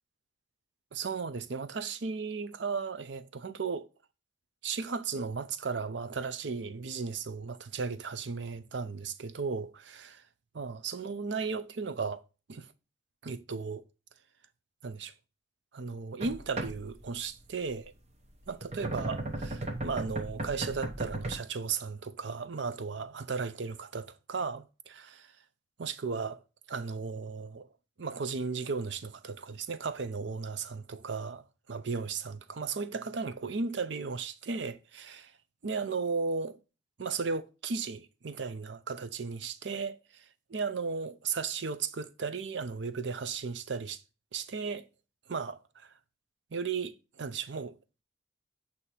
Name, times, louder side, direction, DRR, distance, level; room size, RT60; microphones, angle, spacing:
voice 1, 0.9-3.9 4.6-10.2 10.6-12.2 12.5-12.7 13.2-13.8 14.8-15.1 15.7-17.9 18.5-25.3 25.8-26.4 26.7-27.7 28.0-35.3 35.6-36.6 37.0-40.2 40.5-44.0 44.3-44.9 45.3-45.9 46.5-47.8, right 5 dB, 65° right, 0.6 m, -35 dB
sound 1, 16.2-17.2 18.4-21.3, right 2 dB, 35° right, 0.8 m, -36 dB
8.2 x 2.8 x 4.3 m
head